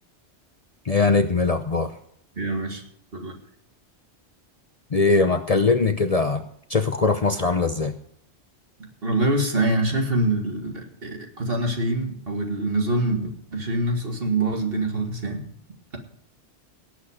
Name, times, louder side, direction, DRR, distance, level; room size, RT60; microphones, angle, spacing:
voice 1, 0.8-1.9 4.9-6.4 6.7-7.9, left 3 dB, 35° left, 8 dB, 0.8 m, -21 dB
voice 2, 2.4-2.8 3.1-3.4 9.0-13.2 13.5-15.4, right 2 dB, 55° right, 3 dB, 2.5 m, -25 dB
17.5 x 8.3 x 5.0 m, 0.69 s
omnidirectional pair, 1.2 m